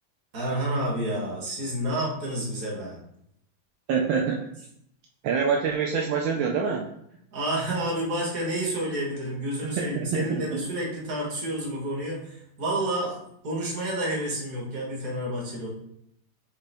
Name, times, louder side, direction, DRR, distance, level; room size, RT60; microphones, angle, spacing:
voice 1, 0.3-3.0 7.3-15.7, right 1 dB, 45° right, -3 dB, 1.6 m, -29 dB
voice 2, 3.9-4.4 5.2-6.9 9.8-10.6, right 6 dB, 80° right, 0 dB, 1.3 m, -26 dB
6.6 x 2.2 x 3.4 m, 0.73 s
omnidirectional pair, 2.2 m